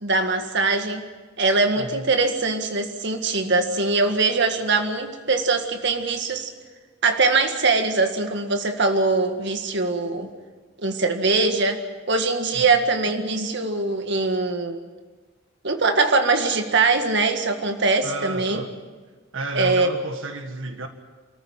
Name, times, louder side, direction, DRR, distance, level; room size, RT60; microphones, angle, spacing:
voice 1, 0.0-1.0 1.4-6.5 7.0-10.3 10.8-11.8 12.1-14.8 15.6-18.6 19.5-19.9, right 3 dB, 60° right, 1.8 m, -22 dB
voice 2, 18.0-18.7 19.3-20.9, right 2 dB, 80° right, 1.7 m, -32 dB
27.5 x 14.5 x 9.0 m
head